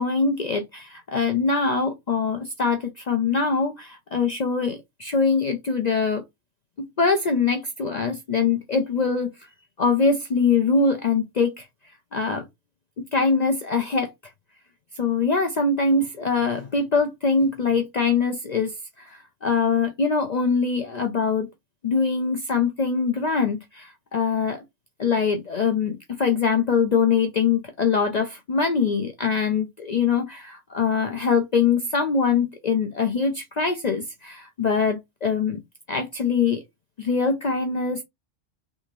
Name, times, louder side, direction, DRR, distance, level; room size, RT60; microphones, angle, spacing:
voice 1, 0.0-6.2 6.8-9.3 9.8-11.7 12.1-12.5 13.0-14.1 15.0-21.5 21.8-24.6 25.0-35.6 35.9-36.6 37.0-38.0, left 5 dB, 60° left, 0.4 m, -23 dB
3.5 x 2.4 x 3.0 m
omnidirectional pair, 1.3 m